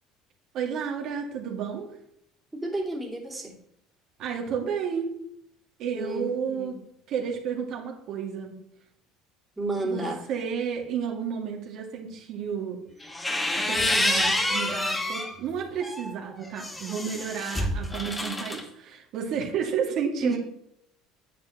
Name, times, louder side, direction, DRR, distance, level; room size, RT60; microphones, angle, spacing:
voice 1, 0.5-1.9 4.2-5.1 5.8-6.8 7.1-8.6 9.8-12.8 13.5-20.4, right 7 dB, 60° right, 0 dB, 2.1 m, -31 dB
voice 2, 2.5-3.6 6.0-6.7 9.6-10.2 20.2-20.4, right 2 dB, 10° right, -1 dB, 2.6 m, -31 dB
sound 1, 13.0-15.3 15.8-18.6, left 1 dB, 15° left, 1.6 m, -28 dB
9.5 x 8.7 x 3.0 m, 0.76 s
hypercardioid pair, 70°, 0 cm